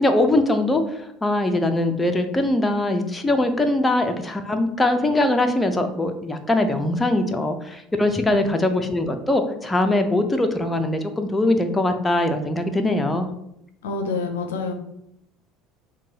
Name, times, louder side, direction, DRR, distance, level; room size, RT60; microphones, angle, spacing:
voice 1, 0.0-13.3, left 1 dB, 15° left, 6 dB, 0.5 m, -22 dB
voice 2, 13.8-14.7, left 4 dB, 75° left, 4 dB, 0.5 m, -28 dB
5.9 x 2.2 x 2.8 m, 0.79 s
figure-of-eight pair, 65°, 0 cm